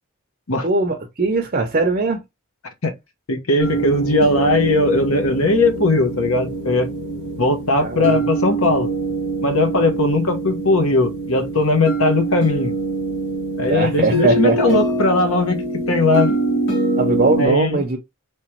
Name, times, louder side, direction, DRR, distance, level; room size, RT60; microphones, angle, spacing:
voice 1, 0.6-2.2 7.8-8.3 13.6-14.8 17.0-18.0, right 3 dB, 40° right, 0.7 m, -20 dB
voice 2, 3.3-6.9 7.4-8.9 9.4-12.7 13.6-16.4 17.4-17.8, left 2 dB, 80° left, 1.1 m, -19 dB
sound 1, 3.6-17.5, right 2 dB, 55° left, 1.7 m, -24 dB
3.3 x 3.0 x 4.4 m
head